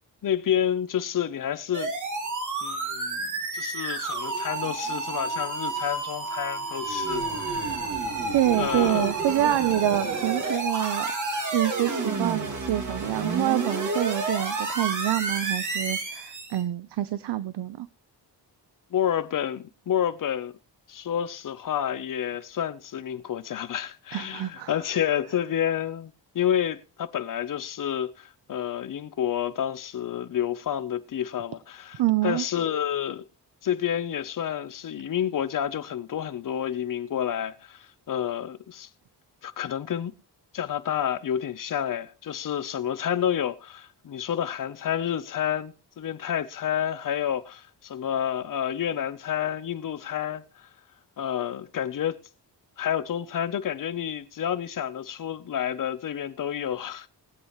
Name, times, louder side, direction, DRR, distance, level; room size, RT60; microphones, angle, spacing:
voice 1, 0.2-1.9 2.6-7.9 8.6-9.1 18.9-20.5 20.9-33.2 33.6-38.9 39.4-40.1 40.5-50.7 51.2-52.2 52.8-57.1, left 9 dB, 50° left, 0.8 m, -29 dB
sound 1, 1.7-16.6, right 3 dB, 45° right, 2.3 m, -30 dB
voice 2, 8.3-11.1 11.5-17.9 24.1-24.7 32.0-32.4, right 13 dB, 75° right, 0.7 m, -26 dB
21.0 x 8.1 x 3.1 m
wide cardioid pair, 180°, 41 cm